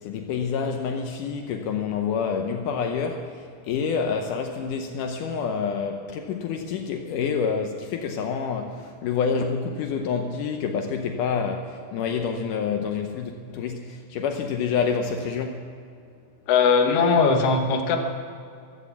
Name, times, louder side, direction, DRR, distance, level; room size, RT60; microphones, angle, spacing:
voice 1, 0.0-15.6, left 6 dB, 75° left, 2.3 m, -28 dB
voice 2, 16.5-18.0, left 5 dB, 55° left, 2.1 m, -19 dB
15.0 x 13.0 x 7.2 m
omnidirectional pair, 3.9 m